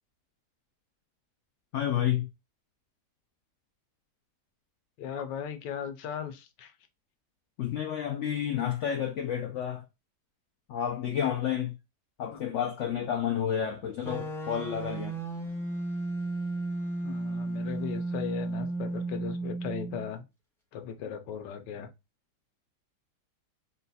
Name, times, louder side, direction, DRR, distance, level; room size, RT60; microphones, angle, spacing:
voice 1, 1.7-2.3 7.6-9.8 10.7-11.8 12.2-15.2, left 9 dB, 75° left, 0.7 m, -30 dB
voice 2, 5.0-6.7 12.3-12.4 17.0-20.2 20.7-21.9, left 8 dB, 90° left, 1.3 m, -37 dB
sound 1, 14.0-20.1, right 2 dB, ahead, 0.5 m, -34 dB
4.1 x 2.3 x 4.0 m
omnidirectional pair, 1.8 m